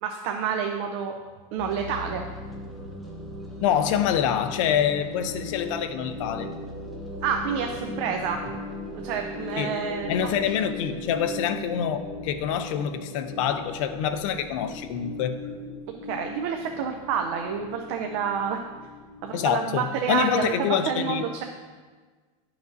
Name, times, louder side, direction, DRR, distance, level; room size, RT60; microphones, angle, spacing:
voice 1, 0.0-1.1 1.5-2.2 7.2-8.4 8.9-10.3 16.0-18.6 19.2-21.4, right 7 dB, 50° right, 3 dB, 0.6 m, -28 dB
sound 1, 1.6-19.6, left 1 dB, ahead, 0.9 m, -38 dB
voice 2, 3.6-6.5 9.6-9.8 10.1-12.0 12.2-15.4 19.3-21.2, left 9 dB, 60° left, 9 dB, 0.7 m, -26 dB
11.0 x 5.9 x 2.7 m, 1.4 s
supercardioid pair, 160°, 18 cm